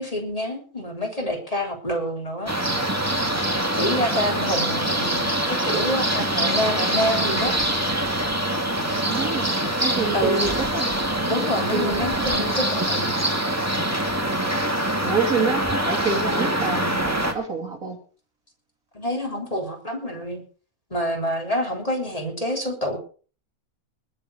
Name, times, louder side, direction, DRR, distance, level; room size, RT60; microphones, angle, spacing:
voice 1, 0.0-2.5 3.7-7.6 10.1-10.5 11.3-13.1 18.9-20.4 20.9-23.0, equal, 25° left, 1 dB, 3.6 m, -27 dB
City morning, 2.5-17.3, right 1 dB, 10° right, 1.9 m, -24 dB
voice 2, 8.9-11.0 11.7-12.3 15.0-18.0, right 5 dB, 70° right, 1 dB, 3.5 m, -27 dB
20.0 x 7.1 x 6.3 m, 0.40 s
omnidirectional pair, 1.5 m